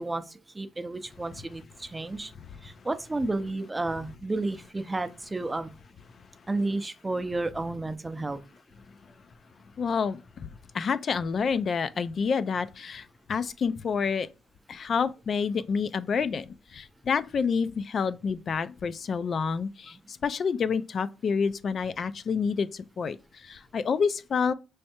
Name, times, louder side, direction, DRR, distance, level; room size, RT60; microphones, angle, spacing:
voice 1, 0.0-2.3 2.6-5.7 6.5-8.4 19.9-20.0, right 2 dB, 15° right, 0.5 m, -32 dB
voice 2, 9.8-10.5 10.7-14.3 14.7-24.5, left 5 dB, 50° left, 0.3 m, -28 dB
5.4 x 3.2 x 2.9 m
cardioid pair, 90°, 0 cm